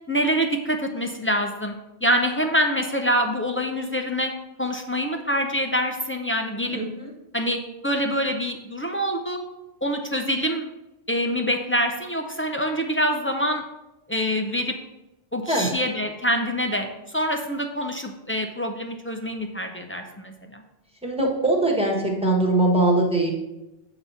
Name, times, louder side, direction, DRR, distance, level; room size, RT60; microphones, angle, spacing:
voice 1, 0.1-1.7 2.0-4.3 4.6-6.8 7.3-9.4 9.8-10.6 11.1-13.6 14.1-14.7 15.3-16.9 17.1-20.6, equal, 20° left, 3 dB, 0.4 m, -25 dB
voice 2, 6.7-7.1 15.5-15.7 21.0-23.3, right 2 dB, 5° right, -2 dB, 1.3 m, -21 dB
8.2 x 3.0 x 5.6 m, 0.96 s
omnidirectional pair, 1.1 m